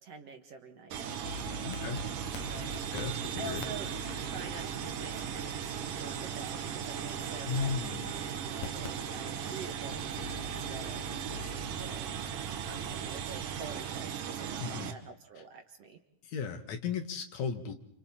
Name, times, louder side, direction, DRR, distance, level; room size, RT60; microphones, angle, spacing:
voice 1, 0.0-2.8 3.4-3.9 4.2-16.0, right 3 dB, 55° right, 4 dB, 2.5 m, -47 dB
sound 1, 0.9-14.9, right 8 dB, 80° right, 3.0 m, -37 dB
sound 2, 1.2-13.2, left 3 dB, 80° left, 3.1 m, -46 dB
voice 2, 1.6-2.0 2.9-3.6 7.4-8.1 14.6-14.9 16.2-17.7, left 6 dB, 65° left, 6 dB, 2.7 m, -35 dB
29.0 x 29.0 x 4.4 m, 0.70 s
omnidirectional pair, 3.8 m